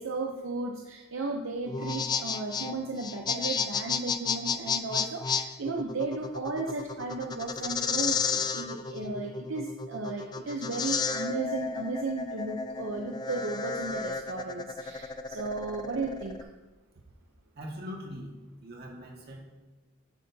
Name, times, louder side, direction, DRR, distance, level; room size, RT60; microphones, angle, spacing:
voice 1, 0.0-16.4, right 3 dB, 70° right, 1 dB, 0.7 m, -35 dB
sound 1, 1.7-16.4, left 5 dB, 20° left, 0.3 m, -32 dB
voice 2, 17.6-18.3 18.6-19.5, equal, 50° right, -1 dB, 1.8 m, -41 dB
10.0 x 9.0 x 2.8 m, 1.2 s
head